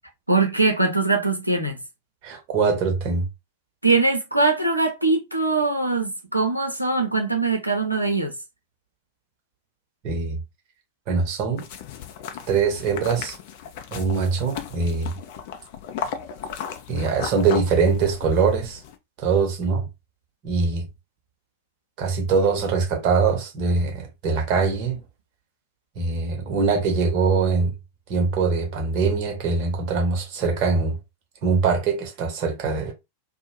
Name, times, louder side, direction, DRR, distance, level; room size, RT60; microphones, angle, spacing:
voice 1, 0.3-1.8 3.8-8.3, right 3 dB, 85° right, 0.6 m, -22 dB
voice 2, 2.2-3.3 10.0-10.4 11.1-11.6 12.5-13.3 13.9-15.1 16.9-18.8 19.2-19.9 20.4-20.9 22.0-25.0 26.0-27.7 28.1-31.0 31.4-32.9, right 4 dB, 45° right, 0.9 m, -22 dB
sound 1, 11.6-19.0, left 8 dB, 50° left, 0.4 m, -36 dB
2.6 x 2.0 x 2.9 m
figure-of-eight pair, 90°, 0 cm